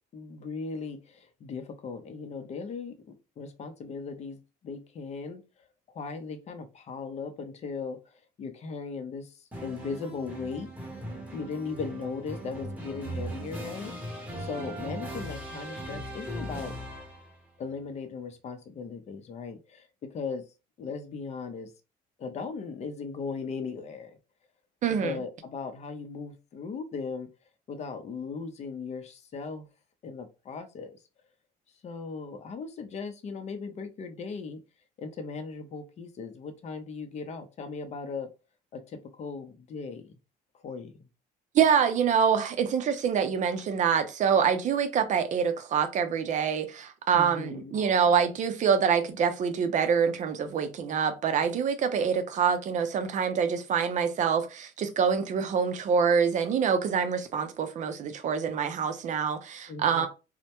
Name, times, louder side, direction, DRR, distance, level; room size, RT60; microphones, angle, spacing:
voice 1, 0.1-5.4 5.9-10.7 11.3-13.9 14.4-16.7 17.6-20.4 20.8-21.7 22.2-24.2 24.9-27.3 27.7-29.7 30.0-31.0 31.8-34.6 35.0-38.3 38.7-40.2 40.5-41.1 47.1-47.8 59.7-60.1, left 5 dB, 40° left, 0.5 m, -38 dB
sound 1, 9.5-17.4, right 1 dB, 10° right, 0.9 m, -39 dB
voice 2, 24.8-25.2 41.5-60.1, right 7 dB, 45° right, 0.5 m, -26 dB
2.1 x 2.1 x 2.9 m
cardioid pair, 110°, 17 cm